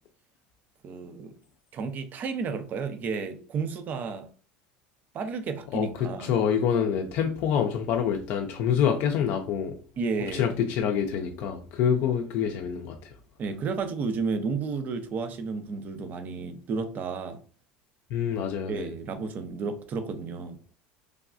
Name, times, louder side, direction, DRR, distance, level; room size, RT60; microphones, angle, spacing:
voice 1, 0.8-1.3 1.7-4.3 5.1-6.3 10.0-10.5 13.4-17.4 18.7-20.6, right 4 dB, 40° right, 0.5 m, -32 dB
voice 2, 5.7-9.8 10.3-13.1 18.1-18.9, left 8 dB, 60° left, 0.4 m, -26 dB
3.3 x 2.2 x 2.5 m
supercardioid pair, 105°, 4 cm